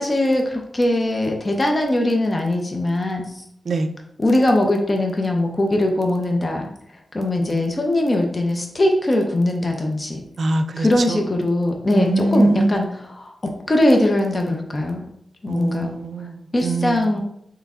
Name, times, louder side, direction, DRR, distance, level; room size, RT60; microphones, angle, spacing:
voice 1, 0.0-3.4 4.2-6.7 7.1-10.2 10.8-15.0 15.4-15.9 16.5-17.2, left 1 dB, 30° left, 0.7 m, -21 dB
voice 2, 10.4-11.2 11.9-12.8 15.5-17.1, right 2 dB, 70° right, 0.4 m, -23 dB
3.5 x 3.2 x 3.5 m
wide cardioid pair, 80°, 0 cm